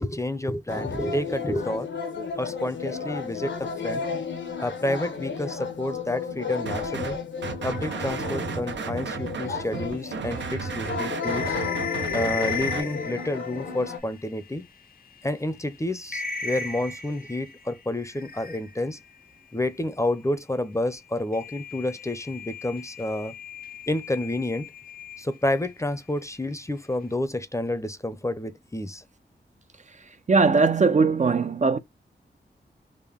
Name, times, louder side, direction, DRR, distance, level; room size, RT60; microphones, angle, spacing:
voice 1, 0.0-1.9 2.4-4.0 4.6-7.2 7.6-11.5 12.1-14.7 15.2-19.0 19.5-23.3 23.9-24.7 25.2-29.0, left 1 dB, 15° left, 0.6 m, -29 dB
sound 1, 0.7-14.0, left 5 dB, 80° left, 1.0 m, -33 dB
sound 2, 6.7-7.2 7.4-12.8, right 6 dB, 75° right, 0.7 m, -33 dB
sound 3, 10.2-14.6 15.1-15.2 15.6-15.7 16.1-19.0 21.3-25.7, left 6 dB, 50° left, 0.5 m, -36 dB
voice 2, 30.3-31.8, right 4 dB, 40° right, 0.5 m, -20 dB
3.6 x 2.1 x 3.5 m
cardioid pair, 55°, 19 cm